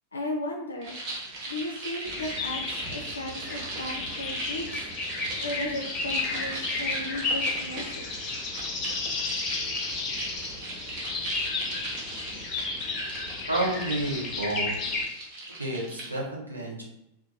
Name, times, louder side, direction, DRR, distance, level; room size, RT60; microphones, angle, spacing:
voice 1, 0.1-1.0 1.5-4.9 5.4-8.3, left 1 dB, 75° left, 0 dB, 0.3 m, -36 dB
sound 1, 0.8-16.2, right 2 dB, 45° right, 0.8 m, -39 dB
sound 2, 2.0-15.1, left 3 dB, 35° left, 0.6 m, -33 dB
voice 2, 13.5-14.7 15.5-16.8, right 2 dB, 80° right, -4 dB, 0.8 m, -30 dB
2.7 x 2.1 x 2.8 m, 0.87 s
figure-of-eight pair, 90°, 0 cm